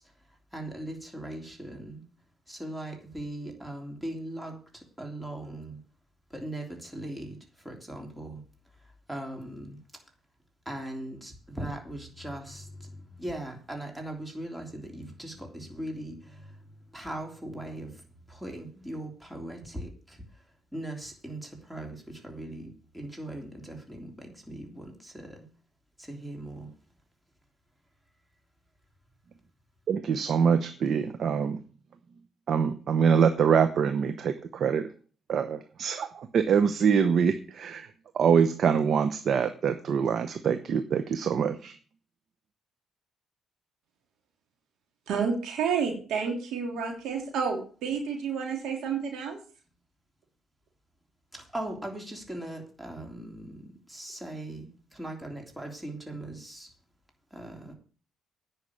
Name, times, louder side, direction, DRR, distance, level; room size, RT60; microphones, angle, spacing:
voice 1, 0.0-2.0 2.5-5.8 6.3-9.8 10.6-25.4 26.0-26.7 51.3-56.7 57.3-57.7, right 1 dB, 10° right, 2 dB, 3.2 m, -40 dB
voice 2, 29.9-31.6 32.5-34.9 35.3-37.9 38.1-41.7, right 7 dB, 60° right, 9 dB, 0.8 m, -25 dB
voice 3, 45.1-49.4, right 6 dB, 85° right, 1 dB, 3.2 m, -30 dB
10.0 x 5.7 x 8.5 m, 0.40 s
cardioid pair, 90°, 0 cm